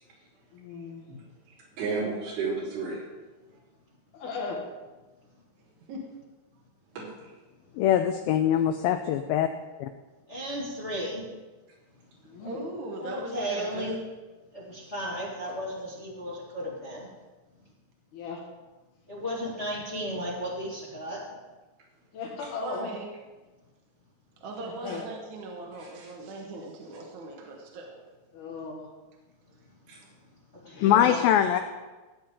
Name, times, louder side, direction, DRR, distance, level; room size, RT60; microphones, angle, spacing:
voice 1, 0.5-1.1 4.1-4.7 12.2-12.7 18.1-18.4 22.1-22.9 24.6-25.1 28.3-28.9 30.6-31.1, left 4 dB, 70° left, -1 dB, 3.7 m, -37 dB
voice 2, 1.5-3.1 7.0-7.3 24.9-25.0 25.8-26.1 29.9-30.0, right 4 dB, 75° right, -8 dB, 5.7 m, -33 dB
voice 3, 7.8-9.5 9.8-9.9 30.8-31.6, left 10 dB, 85° left, 8 dB, 2.1 m, -22 dB
voice 4, 10.3-11.2 13.0-14.0 14.5-17.1 19.1-21.2 30.6-30.9 31.4-31.6, equal, 45° left, -5 dB, 0.9 m, -34 dB
voice 5, 12.4-13.9 22.6-23.1 24.4-27.9, right 2 dB, 60° right, 0 dB, 2.3 m, -39 dB
15.5 x 8.7 x 3.8 m, 1.2 s
omnidirectional pair, 4.8 m